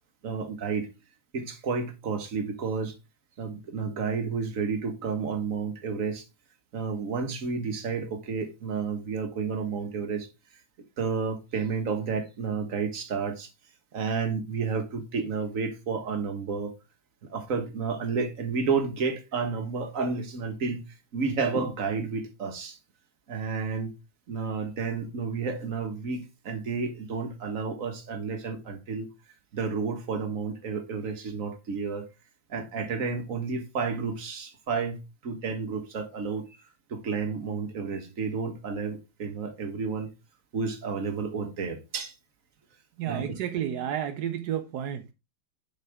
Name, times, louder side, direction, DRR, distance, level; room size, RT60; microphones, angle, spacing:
voice 1, 0.2-0.9 1.3-2.9 3.4-6.2 6.7-10.3 11.0-13.5 13.9-16.7 17.3-20.8 21.1-22.8 23.3-23.9 24.3-29.1 29.5-32.1 32.5-36.4 36.9-40.1 40.5-42.1 43.1-43.2, right 5 dB, 45° right, 1.5 m, -31 dB
voice 2, 43.0-45.1, right 10 dB, 70° right, 1.0 m, -31 dB
9.0 x 5.6 x 3.5 m
omnidirectional pair, 2.3 m